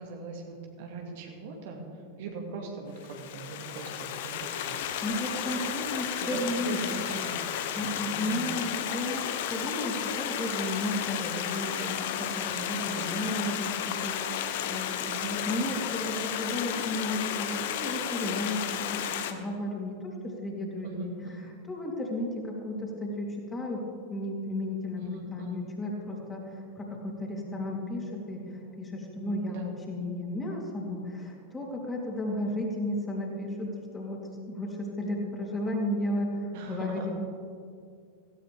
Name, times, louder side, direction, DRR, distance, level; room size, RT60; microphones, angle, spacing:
voice 1, 0.0-1.8 2.2-4.8 6.2-8.5 12.6-13.1 15.1-15.8 20.8-21.5 25.0-25.7 29.5-29.6 36.5-37.1, right 4 dB, 50° right, 1 dB, 2.2 m, -41 dB
Stream, 3.0-19.3, left 9 dB, 50° left, 1.1 m, -33 dB
voice 2, 5.0-7.2 7.7-19.0 19.3-21.1 21.7-23.8 24.1-25.0 25.3-28.5 28.8-29.6 29.9-34.2 34.5-37.1, left 1 dB, 15° left, -2 dB, 3.5 m, -33 dB
17.0 x 16.5 x 3.6 m, 2.2 s
figure-of-eight pair, 90°, 0 cm